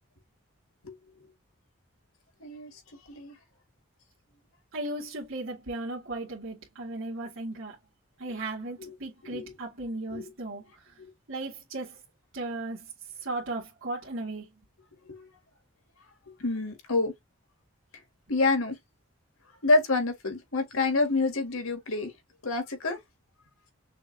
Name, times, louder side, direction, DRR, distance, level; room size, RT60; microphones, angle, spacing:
voice 1, 2.4-2.8 3.1-3.4 8.8-8.9 9.2-9.5 10.1-10.2 11.0-11.1 15.0-15.3 16.3-17.1 18.3-18.8 19.6-22.1 22.4-23.0, left 3 dB, 85° left, 2.0 m, -27 dB
voice 2, 4.7-7.8 8.2-11.0 11.3-12.0 12.3-12.9 13.2-14.5, right 2 dB, 65° right, 1.9 m, -36 dB
6.2 x 2.9 x 2.8 m
head